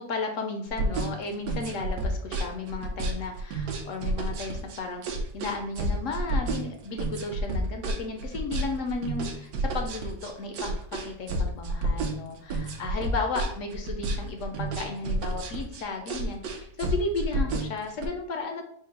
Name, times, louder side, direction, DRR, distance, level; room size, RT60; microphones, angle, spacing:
voice 1, 0.0-5.0 5.3-18.6, left 3 dB, 70° left, 4 dB, 0.8 m, -34 dB
sound 1, 0.7-18.1, right 2 dB, 70° right, 1.1 m, -30 dB
4.5 x 2.1 x 4.5 m, 0.65 s
omnidirectional pair, 1.8 m